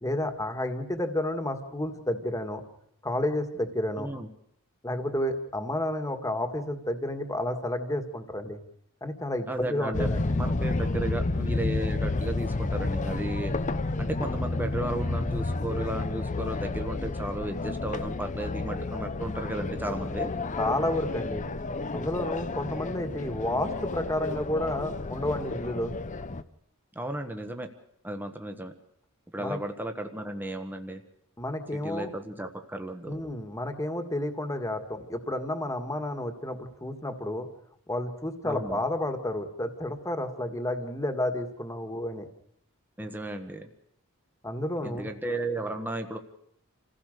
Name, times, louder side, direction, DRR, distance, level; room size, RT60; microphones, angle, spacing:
voice 1, 0.0-2.6 3.0-4.1 4.8-8.6 9.0-10.4 20.6-21.5 21.9-25.9 29.4-29.6 31.4-32.1 33.1-37.5 37.9-42.3 44.4-45.1, left 1 dB, 15° left, 7 dB, 1.9 m, -31 dB
voice 2, 4.0-4.3 9.5-10.1 10.3-13.5 14.0-20.3 26.9-27.7 28.0-28.7 29.3-31.0 31.8-33.1 38.4-38.8 43.0-43.7 44.8-46.2, right 1 dB, 10° right, 6 dB, 1.4 m, -34 dB
sound 1, 9.9-26.4, left 2 dB, 35° left, 0.8 m, -31 dB
27.5 x 16.0 x 6.7 m, 0.72 s
head